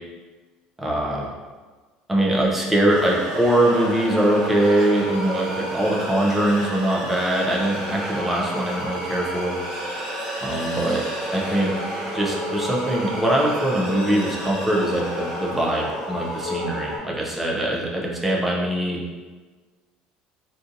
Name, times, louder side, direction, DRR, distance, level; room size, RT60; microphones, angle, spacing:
voice 1, 0.8-1.3 2.1-9.6 10.4-11.0 11.3-11.7 12.1-19.0, right 1 dB, 5° right, -3 dB, 0.4 m, -22 dB
sound 1, 2.9-17.0, right 1 dB, 30° right, 1.0 m, -30 dB
3.7 x 2.6 x 2.5 m, 1.4 s
cardioid pair, 175°, 2 cm